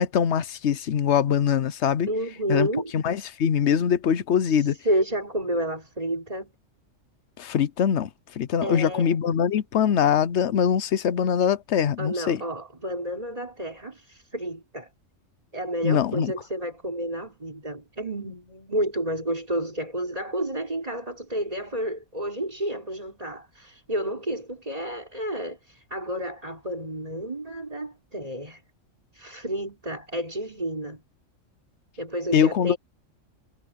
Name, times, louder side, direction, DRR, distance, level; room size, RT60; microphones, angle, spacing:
voice 1, 0.0-2.1 2.5-2.7 2.9-4.7 7.4-8.1 8.4-12.4 15.8-16.3 32.3-32.7, left 8 dB, 60° left, 1.0 m, -23 dB
voice 2, 2.1-2.9 4.4-6.5 8.6-9.2 12.0-14.9 15.5-28.6 29.1-31.0 32.0-32.8, right 1 dB, 25° right, 4.7 m, -30 dB
omnidirectional pair, 1.4 m